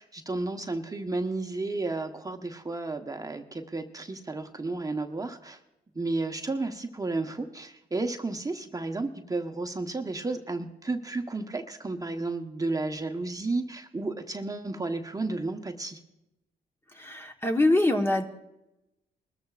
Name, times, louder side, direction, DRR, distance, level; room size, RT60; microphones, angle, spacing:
voice 1, 0.0-5.6 5.9-16.0, right 3 dB, 20° right, 5 dB, 1.0 m, -32 dB
voice 2, 17.0-18.2, left 2 dB, 15° left, 3 dB, 1.1 m, -24 dB
21.0 x 13.5 x 2.4 m, 0.91 s
cardioid pair, 70°, 17 cm